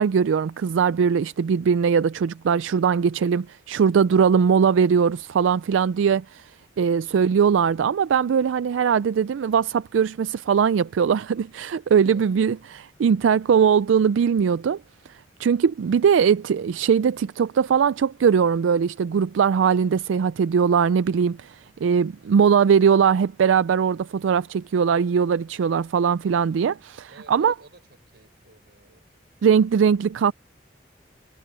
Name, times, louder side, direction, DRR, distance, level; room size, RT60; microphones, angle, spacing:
voice 1, 0.0-6.5 6.8-14.8 15.1-27.5 29.4-30.3, right 6 dB, 90° right, 0.4 m, -20 dB
voice 2, 12.0-12.8 27.0-29.1, right 2 dB, 60° right, 6.2 m, -52 dB
head